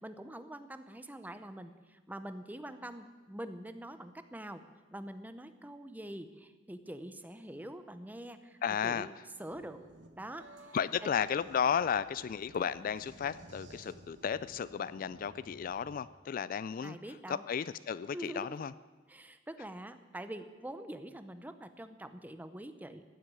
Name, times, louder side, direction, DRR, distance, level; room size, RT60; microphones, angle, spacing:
voice 1, 0.0-4.6 4.9-9.1 9.4-9.8 10.2-10.5 11.0-11.1 16.8-17.4 18.1-18.6 19.1-23.0, right 1 dB, 10° right, 10 dB, 0.8 m, -45 dB
voice 2, 8.6-9.1 10.7-17.0 17.3-18.7, left 7 dB, 50° left, 16 dB, 0.3 m, -33 dB
sound 1, 9.5-16.0, right 2 dB, 75° right, 1.4 m, -55 dB
15.5 x 7.8 x 9.1 m, 1.3 s
head